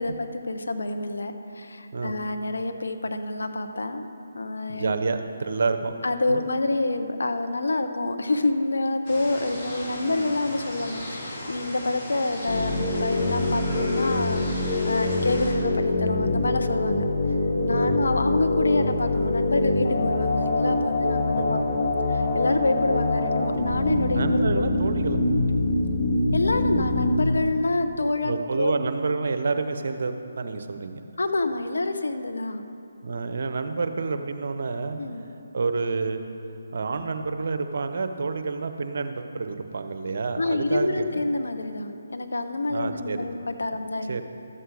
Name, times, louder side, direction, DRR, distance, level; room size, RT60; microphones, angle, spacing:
voice 1, 0.0-4.1 4.3-4.9 6.0-17.0 17.6-21.6 22.1-24.6 26.3-28.8 31.2-32.6 35.0-35.2 40.4-44.2, left 2 dB, 75° left, 7 dB, 0.9 m, -27 dB
voice 2, 4.7-5.9 6.3-6.4 17.6-18.0 21.0-21.8 24.1-25.2 28.2-31.1 33.0-35.0 35.5-36.2 36.7-41.3 42.7-43.3 44.1-44.2, right 4 dB, 55° right, 8 dB, 0.8 m, -29 dB
sound 1, 9.1-15.5, left 1 dB, 30° left, 2.5 m, -37 dB
sound 2, 12.5-27.3, left 2 dB, 50° left, 1.8 m, -24 dB
13.0 x 7.8 x 4.9 m, 2.7 s
figure-of-eight pair, 150°, 0 cm